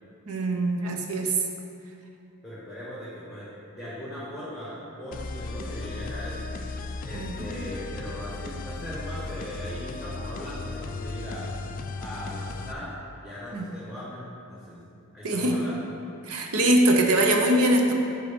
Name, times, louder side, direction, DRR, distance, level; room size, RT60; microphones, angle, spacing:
voice 1, 0.3-1.4 7.1-7.6 13.5-13.7 15.2-15.8 16.2-17.9, right 1 dB, 80° right, 2 dB, 0.8 m, -23 dB
voice 2, 2.4-6.5 7.0-11.5 12.0-12.9 13.2-14.2 14.5-14.8 15.1-15.8, equal, ahead, -10 dB, 1.4 m, -39 dB
sound 1, 5.1-12.7, left 3 dB, 40° left, 0.4 m, -36 dB
7.8 x 4.7 x 5.2 m, 2.7 s
head